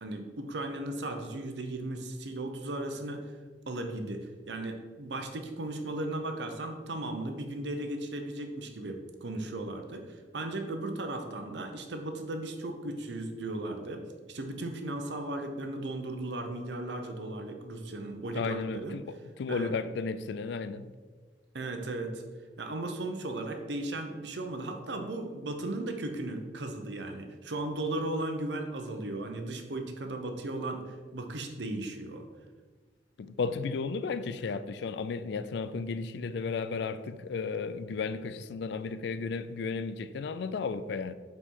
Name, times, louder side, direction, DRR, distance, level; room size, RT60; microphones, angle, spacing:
voice 1, 0.0-3.2 3.7-19.0 19.5-19.7 21.5-22.2 22.6-32.3, right 2 dB, 70° right, 0.8 m, -36 dB
voice 2, 18.3-20.9 33.2-41.1, left 4 dB, 65° left, 0.3 m, -34 dB
5.5 x 4.4 x 4.7 m
head